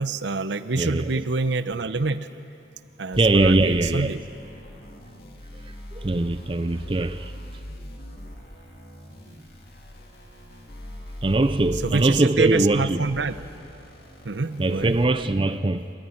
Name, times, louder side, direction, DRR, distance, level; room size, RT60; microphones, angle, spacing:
voice 1, 0.0-2.3 3.0-4.2 11.8-13.3 14.2-15.0, right 3 dB, 75° right, 0.8 m, -26 dB
voice 2, 0.8-1.1 3.2-4.1 5.5-7.3 11.2-13.0 14.6-15.9, right 2 dB, 25° right, 0.5 m, -22 dB
sound 1, 3.1-15.0, equal, 55° left, 2.4 m, -41 dB
28.0 x 14.5 x 10.0 m
head